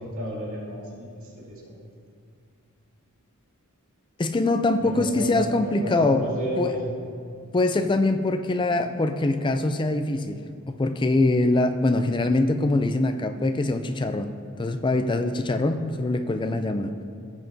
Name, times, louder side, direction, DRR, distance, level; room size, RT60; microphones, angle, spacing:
voice 1, 0.0-1.7 4.8-6.8, equal, 70° right, -6 dB, 2.4 m, -33 dB
voice 2, 4.2-6.2 6.6-6.7 7.5-14.3 14.6-17.0, left 2 dB, 20° left, 8 dB, 0.4 m, -23 dB
15.5 x 7.7 x 2.7 m, 2.3 s
head